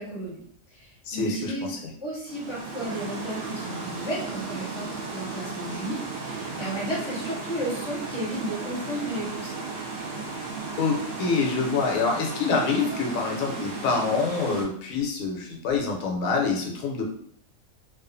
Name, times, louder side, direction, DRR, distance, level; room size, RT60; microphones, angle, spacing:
voice 1, 0.0-1.8 2.0-9.6, right 1 dB, 30° left, -5 dB, 0.6 m, -33 dB
voice 2, 1.1-1.8 10.8-17.0, left 4 dB, 80° left, 0 dB, 1.0 m, -26 dB
sound 1, 2.3-14.6, right 3 dB, 60° right, 0.8 m, -35 dB
2.4 x 2.4 x 2.5 m, 0.63 s
omnidirectional pair, 1.4 m